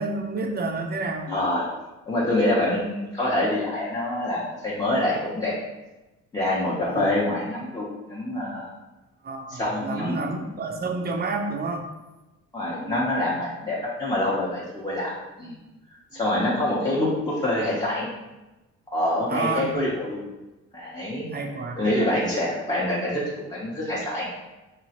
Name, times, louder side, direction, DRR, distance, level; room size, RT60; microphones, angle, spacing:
voice 1, 0.0-1.3 6.8-7.1 9.2-11.9 12.7-13.0 16.1-16.2 19.3-19.9 21.3-21.9, right 3 dB, 30° right, 3 dB, 0.5 m, -30 dB
voice 2, 1.3-1.7 2.1-5.5 6.3-8.7 9.5-10.3 12.5-15.1 15.4-15.6 15.9-18.1 18.9-20.2 20.7-21.3 21.8-24.3, left 1 dB, 15° left, -8 dB, 0.6 m, -26 dB
2.9 x 2.4 x 2.8 m, 1.0 s
cardioid pair, 90°, 30 cm